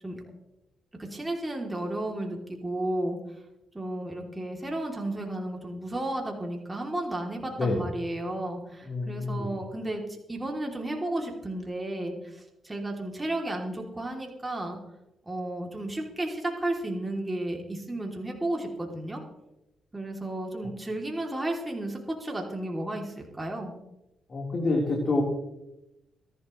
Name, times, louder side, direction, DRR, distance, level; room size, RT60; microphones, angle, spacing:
voice 1, 1.0-3.2 3.7-14.8 15.2-19.2 19.9-23.7, right 1 dB, 20° right, 0 dB, 3.1 m, -33 dB
voice 2, 8.8-9.5 24.3-25.2, left 2 dB, 45° left, -2 dB, 4.1 m, -27 dB
23.0 x 11.5 x 3.2 m, 0.93 s
cardioid pair, 70°, 0 cm